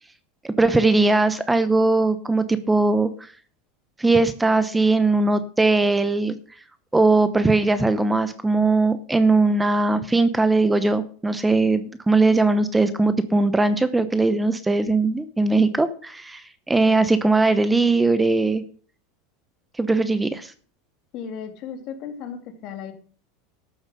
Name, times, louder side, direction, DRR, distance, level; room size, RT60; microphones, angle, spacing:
voice 1, 0.4-3.3 4.0-6.4 6.9-18.6 19.8-20.5, right 3 dB, 10° right, 12 dB, 0.8 m, -20 dB
voice 2, 21.1-22.9, left 7 dB, 50° left, 6 dB, 2.6 m, -35 dB
13.0 x 7.1 x 6.6 m, 0.44 s
supercardioid pair, 130°, 0 cm